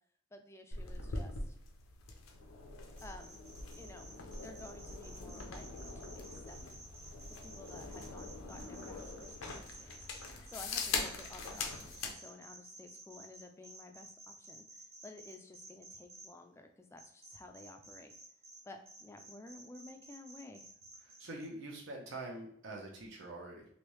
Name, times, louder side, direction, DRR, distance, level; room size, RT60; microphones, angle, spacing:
voice 1, 0.3-1.6 3.0-3.4 3.7-4.1 4.4-6.6 7.3-10.0 10.5-18.1 18.6-20.7, left 2 dB, 15° left, 5 dB, 0.3 m, -53 dB
sound 1, 0.7-12.2, left 3 dB, 85° left, 0.6 m, -43 dB
sound 2, 3.0-16.3 17.0-18.6 18.8-21.5, right 2 dB, 35° right, 0.9 m, -53 dB
voice 2, 21.2-23.7, right 2 dB, 60° right, 0 dB, 0.6 m, -45 dB
3.2 x 2.6 x 3.0 m, 0.66 s
head